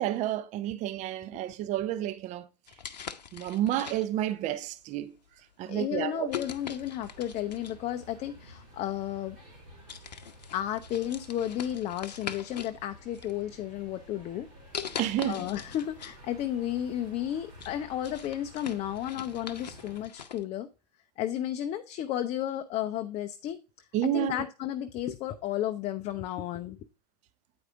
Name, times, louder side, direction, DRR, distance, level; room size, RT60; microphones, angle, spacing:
voice 1, 0.0-2.5 3.3-5.2 5.6-6.3 15.0-15.4 23.9-24.3, right 12 dB, 35° right, 0.6 m, -30 dB
sound 1, 2.7-4.3 5.0-5.3 6.3-7.9 8.9-9.0 9.5-9.6 9.9-12.8 13.1-13.9 14.7-16.2 16.5-16.6 17.1-20.4, left 7 dB, 75° left, 0.7 m, -42 dB
voice 2, 5.7-9.4 10.5-14.5 15.3-20.7 21.2-26.8, left 11 dB, 30° left, 0.5 m, -33 dB
sound 2, 6.3-20.0, equal, 60° right, 4.5 m, -52 dB
8.7 x 4.8 x 3.5 m
figure-of-eight pair, 90°, 21 cm